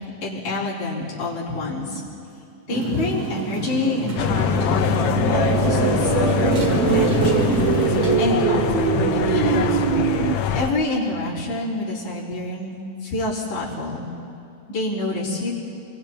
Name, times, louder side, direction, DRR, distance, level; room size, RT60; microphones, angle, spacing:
voice 1, 0.2-2.0 2.7-9.6 10.5-14.1 14.7-15.5, left 2 dB, 60° left, -9 dB, 5.9 m, -27 dB
Motorcycle, 2.7-8.2, right 2 dB, 40° right, 1.5 m, -25 dB
sound 1, 4.2-10.7, left 7 dB, 85° left, 1.3 m, -23 dB
sound 2, 5.3-10.4, right 11 dB, 90° right, 1.6 m, -23 dB
27.5 x 22.5 x 4.5 m, 2.6 s
omnidirectional pair, 3.9 m